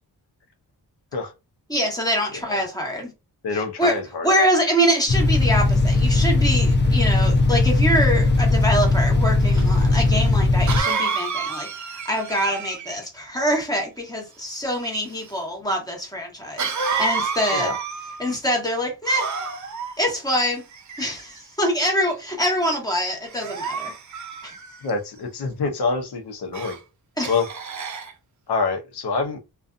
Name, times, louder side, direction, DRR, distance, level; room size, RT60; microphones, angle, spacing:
voice 1, 1.7-3.1 3.5-4.0 4.2-17.7 18.2-19.3 20.0-20.6 21.0-23.9 24.4-24.5 27.2-27.3, equal, 10° left, 1.0 m, -24 dB
voice 2, 3.4-4.3 17.5-17.8 24.8-26.8 27.3-27.5 28.5-29.4, left 4 dB, 80° left, 0.7 m, -26 dB
sound 1, 5.1-10.8, left 2 dB, 30° left, 0.5 m, -18 dB
Cough, 9.6-9.7 10.7-13.0 16.6-18.3 19.0-19.9 20.7-21.4 22.0-22.3 23.3-24.9 26.5-26.8 27.2-28.1, right 5 dB, 50° right, 0.5 m, -29 dB
2.5 x 2.3 x 2.4 m
wide cardioid pair, 110°, 39 cm